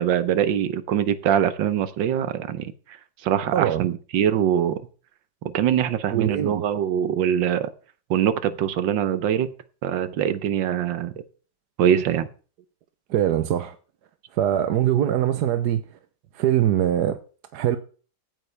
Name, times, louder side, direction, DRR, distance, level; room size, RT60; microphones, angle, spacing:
voice 1, 0.0-2.7 3.2-4.8 5.5-7.7 8.1-9.5 9.8-11.1 11.8-12.3, right 9 dB, 85° right, 1.6 m, -23 dB
voice 2, 3.5-3.9 6.1-6.6 13.1-13.8 14.3-15.8 16.3-17.2 17.5-17.8, right 11 dB, 65° right, 1.3 m, -22 dB
16.0 x 8.9 x 3.4 m
omnidirectional pair, 2.0 m